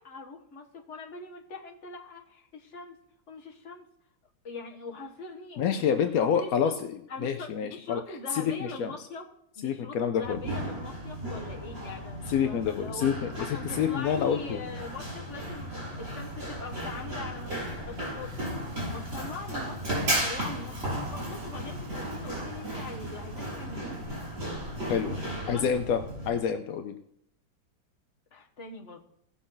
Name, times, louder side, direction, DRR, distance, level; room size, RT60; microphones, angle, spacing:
voice 1, 0.0-3.0 3.3-3.9 4.4-6.7 7.1-9.3 9.6-13.1 13.4-18.4 18.8-24.0 25.3-25.9 28.3-29.0, left 3 dB, 40° left, 1 dB, 1.6 m, -42 dB
voice 2, 5.6-6.7 7.2-8.0 8.3-8.9 9.6-10.4 12.3-14.6 24.9-26.0 26.3-27.0, left 8 dB, 70° left, 7 dB, 0.9 m, -28 dB
Run, 10.2-26.3, equal, 55° right, 6.4 m, -35 dB
17.5 x 6.3 x 3.9 m, 0.72 s
omnidirectional pair, 2.1 m